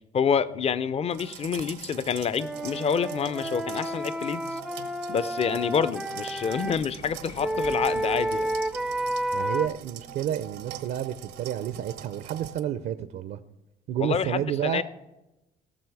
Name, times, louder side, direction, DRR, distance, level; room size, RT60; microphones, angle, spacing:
voice 1, 0.1-4.6 5.1-8.5 14.0-14.8, left 7 dB, 35° left, 16 dB, 0.6 m, -27 dB
sound 1, 1.1-12.6, right 12 dB, 85° right, 0.9 m, -44 dB
Wind instrument woodwind instrument, 2.4-6.8 7.4-9.7, right 1 dB, ahead, 0.5 m, -30 dB
sound 2, 6.6-12.1, left 5 dB, 60° left, 1.7 m, -49 dB
voice 2, 9.3-13.4 13.9-14.8, right 10 dB, 70° right, 12 dB, 0.6 m, -30 dB
18.5 x 6.2 x 4.7 m, 0.94 s
cardioid pair, 110°, 17 cm